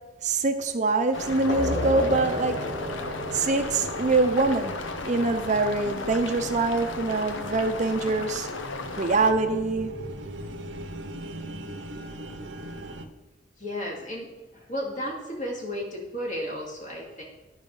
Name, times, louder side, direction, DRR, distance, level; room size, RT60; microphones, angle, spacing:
voice 1, 0.2-2.6 3.3-4.8 5.0-8.5 9.0-9.9, right 3 dB, 40° right, 7 dB, 0.6 m, -24 dB
sound 1, 1.1-9.3, left 3 dB, 85° left, 0.7 m, -36 dB
sound 2, 1.1-13.1, right 1 dB, 75° right, 0.8 m, -40 dB
sound 3, 1.5-6.8, left 1 dB, 65° left, 3.0 m, -34 dB
voice 2, 13.6-14.3 14.5-17.2, equal, 45° left, -3 dB, 2.4 m, -33 dB
10.5 x 4.8 x 5.4 m, 1.1 s
head